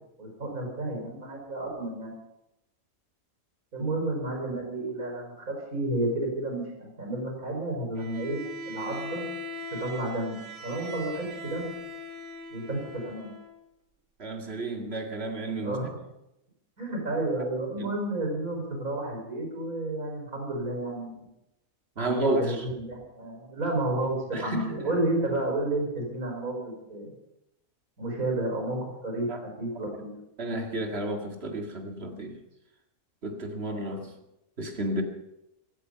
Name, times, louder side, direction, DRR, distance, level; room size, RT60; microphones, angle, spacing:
voice 1, 0.2-2.1 3.7-9.3 9.8-11.7 12.5-13.3 15.6-16.0 16.8-21.3 22.0-27.1 28.0-29.3 29.6-30.1, right 2 dB, 70° right, 1 dB, 5.7 m, -31 dB
Bowed string instrument, 8.0-13.6, left 1 dB, 90° right, 2.2 m, -40 dB
voice 2, 14.2-15.8 17.8-17.9 22.0-22.6 24.3-24.9 29.3-29.4 30.4-32.4 33.2-34.1 34.6-35.0, right 1 dB, 45° right, 4 dB, 2.2 m, -31 dB
16.0 x 14.0 x 5.7 m, 0.87 s
omnidirectional pair, 1.5 m